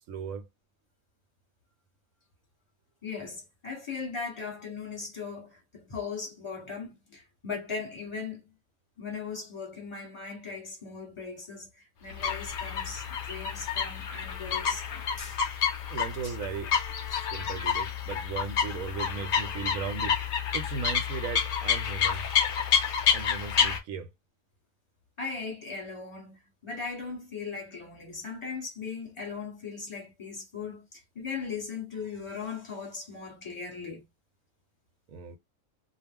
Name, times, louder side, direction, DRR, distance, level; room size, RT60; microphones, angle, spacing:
voice 1, 0.1-0.5 15.9-16.7 17.3-20.1 20.5-22.2 23.1-24.1 35.1-35.4, right 6 dB, 75° right, 1.0 m, -37 dB
voice 2, 3.0-8.5 9.0-15.4 16.2-16.3 17.1-17.2 25.2-34.1, left 5 dB, 25° left, 1.0 m, -38 dB
sound 1, 12.1-23.8, left 7 dB, 55° left, 0.6 m, -29 dB
2.3 x 2.1 x 3.5 m
omnidirectional pair, 1.5 m